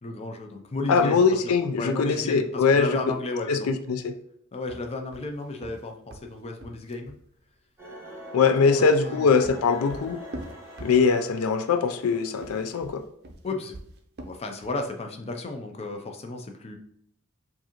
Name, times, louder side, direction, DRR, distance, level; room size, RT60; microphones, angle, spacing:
voice 1, 0.0-3.7 4.5-7.1 9.1-9.6 13.4-13.8 14.2-16.8, left 2 dB, 30° left, 4 dB, 0.5 m, -34 dB
voice 2, 0.9-3.0 3.5-4.1 8.3-10.2 10.8-13.0, left 5 dB, 85° left, 8 dB, 0.4 m, -22 dB
sound 1, 4.6-7.2 8.9-11.4 12.3-14.9, right 1 dB, 50° right, 0.5 m, -43 dB
sound 2, 7.8-12.8, equal, 15° right, 1.3 m, -44 dB
4.8 x 2.6 x 2.9 m, 0.68 s
head